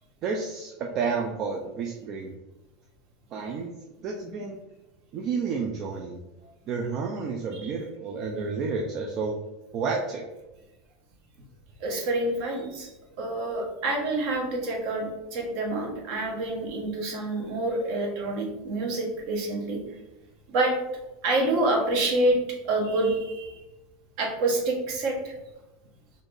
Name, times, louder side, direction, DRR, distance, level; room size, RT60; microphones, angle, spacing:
voice 1, 0.2-2.3 3.3-3.7 4.0-4.6 5.1-6.2 6.7-9.4 9.7-10.2, right 5 dB, 40° right, 1 dB, 0.4 m, -30 dB
voice 2, 11.8-19.8 20.5-20.7 21.2-22.4 22.6-23.6 24.2-25.4, right 2 dB, 55° right, 1 dB, 1.1 m, -27 dB
4.1 x 2.6 x 3.2 m, 1.0 s
supercardioid pair, 145°, 0 cm